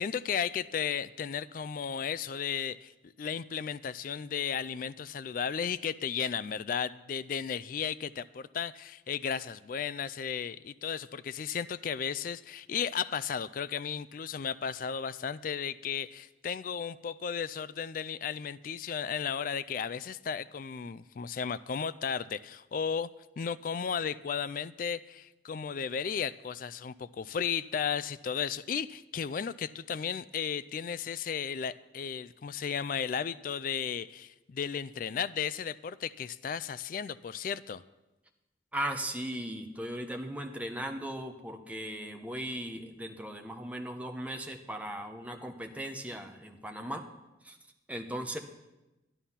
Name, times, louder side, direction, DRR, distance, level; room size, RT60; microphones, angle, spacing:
voice 1, 0.0-23.1 23.4-37.8, left 7 dB, 50° left, 16 dB, 0.3 m, -34 dB
voice 2, 38.7-47.0 47.4-47.6 47.9-48.4, right 1 dB, 10° right, 4 dB, 0.9 m, -37 dB
11.5 x 11.0 x 5.7 m, 1.0 s
head